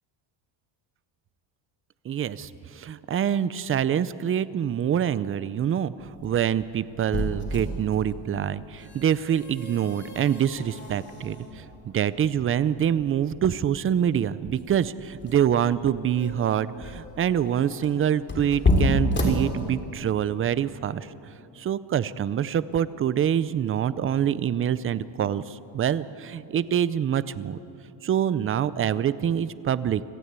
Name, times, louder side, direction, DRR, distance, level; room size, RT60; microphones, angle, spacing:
voice 1, 2.0-21.1 21.6-27.6 28.0-30.0, right 9 dB, 30° right, 17 dB, 0.5 m, -25 dB
sound 1, 6.0-20.1, left 1 dB, 25° left, 3.4 m, -31 dB
25.5 x 15.5 x 8.2 m, 2.8 s
cardioid pair, 135°, 47 cm